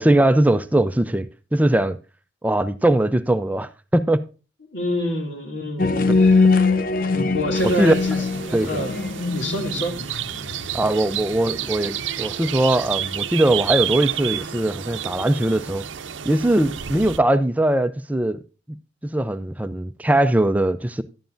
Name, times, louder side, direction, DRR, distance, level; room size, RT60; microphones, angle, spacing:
voice 1, 0.0-2.0 2.4-4.2 7.6-7.9 8.5-8.8 10.7-15.8 16.2-18.4 19.1-21.0, right 1 dB, 10° right, 0.4 m, -20 dB
voice 2, 4.7-6.6 7.3-8.2 8.7-9.0 9.3-10.0, left 1 dB, 75° left, 2.4 m, -27 dB
sound 1, 5.8-10.7, left 4 dB, 45° left, 0.5 m, -21 dB
sound 2, 7.6-17.2, right 10 dB, 80° right, 0.6 m, -30 dB
11.5 x 9.2 x 2.5 m
head